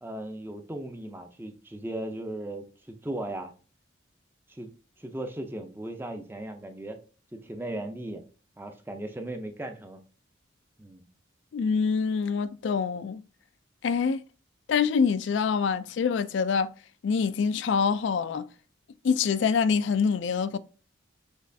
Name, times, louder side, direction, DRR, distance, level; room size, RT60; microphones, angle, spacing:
voice 1, 0.0-3.5 4.5-4.7 5.0-7.0 7.3-8.2 8.6-10.0 10.8-11.1, right 1 dB, 10° right, 0.5 m, -37 dB
voice 2, 11.5-13.2 13.8-14.2 14.7-16.7 17.0-18.5 19.0-20.6, left 6 dB, 70° left, 0.3 m, -25 dB
6.3 x 3.1 x 2.6 m
head